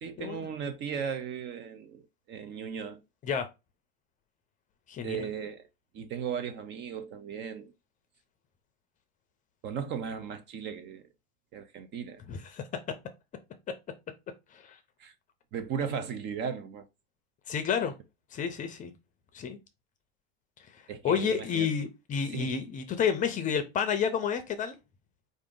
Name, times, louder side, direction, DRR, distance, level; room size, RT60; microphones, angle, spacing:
voice 1, 0.0-2.0 2.3-3.0 5.0-5.7 5.9-7.7 9.6-11.1 11.5-12.2 15.0-15.1 15.5-16.9 20.9-21.7 22.3-22.5, right 7 dB, 35° right, 0.6 m, -36 dB
voice 2, 4.9-5.3 12.3-12.6 14.5-14.8 17.5-17.9 18.3-18.9 19.3-19.6 21.0-24.8, left 7 dB, 25° left, 0.6 m, -30 dB
4.9 x 2.6 x 3.8 m
supercardioid pair, 145°, 33 cm